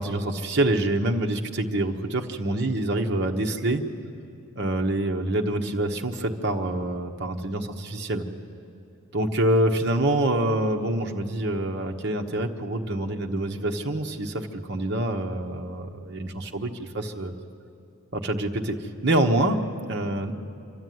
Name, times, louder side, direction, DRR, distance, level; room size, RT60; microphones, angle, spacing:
voice 1, 0.0-3.8 4.5-8.3 9.1-17.3 18.1-20.3, right 1 dB, 50° right, 2 dB, 1.2 m, -26 dB
27.0 x 12.5 x 9.4 m, 2.8 s
head